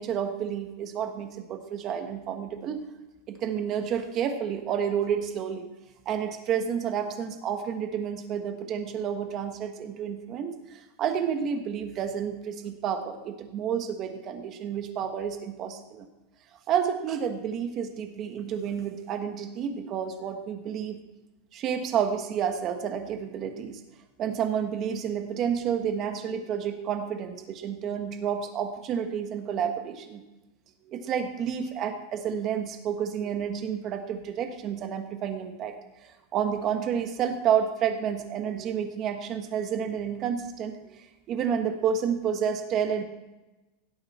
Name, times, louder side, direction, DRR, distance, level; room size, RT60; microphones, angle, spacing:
voice 1, 0.0-2.8 3.3-5.6 6.0-16.1 16.7-21.0 21.5-23.8 24.2-30.2 30.9-35.7 36.0-43.0, right 8 dB, 30° right, 7 dB, 1.2 m, -30 dB
17.0 x 7.9 x 4.2 m, 1.1 s
supercardioid pair, 155°, 0 cm